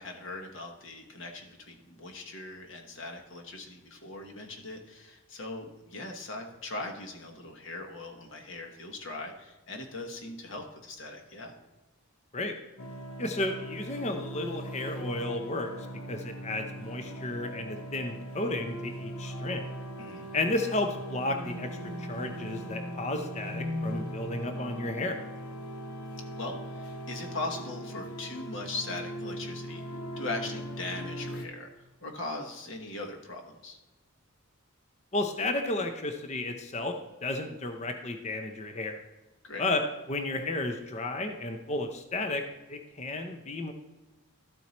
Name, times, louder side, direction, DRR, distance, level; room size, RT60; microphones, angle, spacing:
voice 1, 0.0-11.5 20.0-20.3 26.4-29.8 30.2-31.7 32.0-33.8 39.4-39.6, left 2 dB, 55° left, 3 dB, 1.1 m, -40 dB
sound 1, 12.8-31.5, equal, 75° left, 0.9 m, -39 dB
voice 2, 13.2-15.7 16.1-19.6 20.3-25.2 35.1-37.0 37.2-39.0 39.6-39.8 40.1-42.4 42.7-43.7, left 2 dB, 30° left, 6 dB, 0.5 m, -33 dB
12.5 x 4.5 x 4.1 m, 1.1 s
head